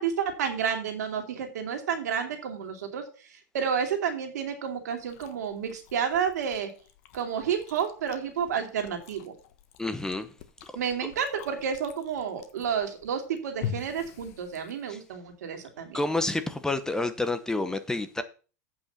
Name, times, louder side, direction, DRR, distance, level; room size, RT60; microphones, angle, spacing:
voice 1, 0.0-3.0 3.3-6.7 7.1-9.3 10.7-16.0, right 7 dB, 80° right, 2.6 m, -30 dB
Chewing mastication, 5.0-15.1, left 8 dB, 55° left, 1.2 m, -44 dB
voice 2, 9.8-10.3 14.9-15.0 15.9-18.2, left 2 dB, 5° left, 0.8 m, -29 dB
8.3 x 5.6 x 7.0 m
supercardioid pair, 130°, 9 cm